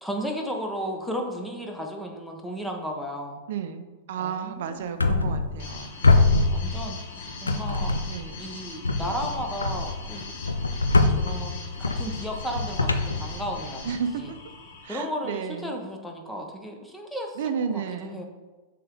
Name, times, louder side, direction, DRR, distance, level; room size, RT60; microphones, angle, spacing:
voice 1, 0.0-3.4 4.2-4.9 6.0-8.0 8.4-10.3 11.1-14.3 14.9-17.4 17.7-18.3, equal, 5° left, 1 dB, 1.1 m, -34 dB
voice 2, 3.5-5.9 8.1-8.4 13.8-14.4 14.8-15.8 17.4-18.2, right 7 dB, 60° right, 8 dB, 0.6 m, -32 dB
sound 1, 5.0-5.8 6.0-7.1 7.5-8.3 8.8-13.9, left 3 dB, 90° left, 0.5 m, -24 dB
sound 2, 5.6-14.9, left 3 dB, 60° left, 1.0 m, -41 dB
6.8 x 3.8 x 3.6 m, 1.2 s
hypercardioid pair, 100°, 0 cm